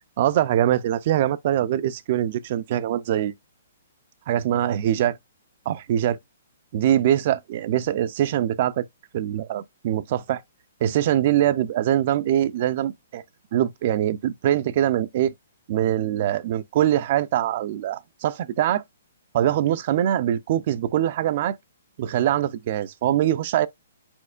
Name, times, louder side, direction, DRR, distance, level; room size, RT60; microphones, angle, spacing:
voice 1, 0.2-3.3 4.3-5.2 5.7-6.2 6.7-8.8 9.1-10.4 10.8-13.2 13.5-15.3 15.7-18.8 19.3-21.5 22.0-23.7, right 11 dB, 45° right, 0.4 m, -23 dB
4.4 x 4.2 x 2.4 m
hypercardioid pair, 145°, 0 cm